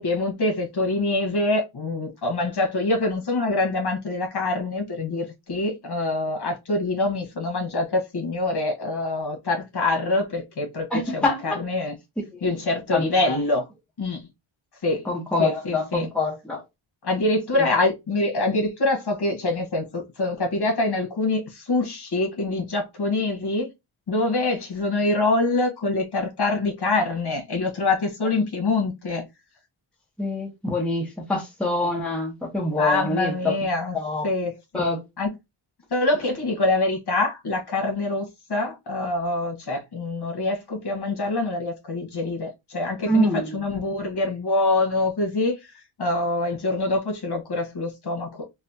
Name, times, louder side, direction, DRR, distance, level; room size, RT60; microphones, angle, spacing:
voice 1, 0.0-10.9 11.1-11.9 12.4-13.6 14.0-14.3 14.8-15.1 15.4-16.1 17.0-23.7 24.1-29.3 32.8-34.0 34.2-34.8 35.2-35.3 35.9-45.6 46.0-48.4, left 2 dB, 50° left, 1.4 m, -25 dB
voice 2, 10.9-11.6 12.2-12.5 12.9-13.4 15.0-16.6 17.5-17.7 30.2-33.6 33.9-34.3 34.7-35.0 43.0-43.6, left 1 dB, ahead, 1.0 m, -25 dB
4.1 x 2.4 x 2.7 m
wide cardioid pair, 120°, 49 cm